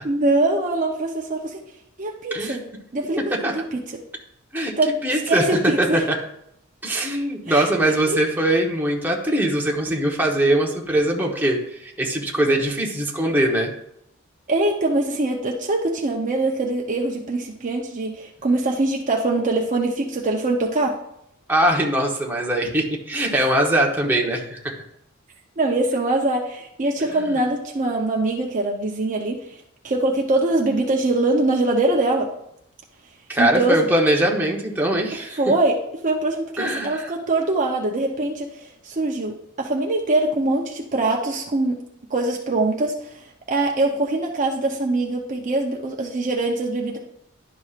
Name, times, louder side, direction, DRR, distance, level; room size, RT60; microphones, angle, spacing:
voice 1, 0.0-1.6 2.0-2.6 2.9-4.0 4.8-6.1 7.5-8.2 14.5-20.9 23.4-23.5 25.6-29.5 29.8-32.3 33.4-33.8 35.4-35.8 36.0-41.8 42.1-47.0, right 2 dB, 35° right, 0 dB, 0.7 m, -23 dB
voice 2, 5.0-6.2 6.8-13.7 21.5-24.7 27.2-27.3 33.3-35.4 36.6-37.1, right 1 dB, 10° right, -1 dB, 1.0 m, -21 dB
11.0 x 6.1 x 2.5 m, 0.77 s
head